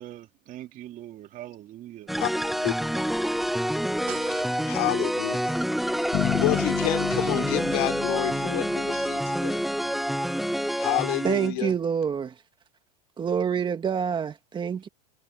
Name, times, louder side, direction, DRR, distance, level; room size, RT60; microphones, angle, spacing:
voice 1, 0.0-2.1, right 13 dB, 40° right, 2.7 m, -42 dB
sound 1, 2.1-11.5, equal, ahead, 0.4 m, -27 dB
sound 2, 4.1-5.0, right 22 dB, 75° right, 7.6 m, -42 dB
voice 2, 4.7-5.6 6.1-9.6 10.8-11.7, left 27 dB, 70° left, 4.5 m, -29 dB
sound 3, 6.1-9.9, left 16 dB, 50° left, 2.4 m, -32 dB
voice 3, 11.2-12.3 13.2-14.9, right 7 dB, 25° right, 2.0 m, -27 dB
supercardioid pair, 125°, 20 cm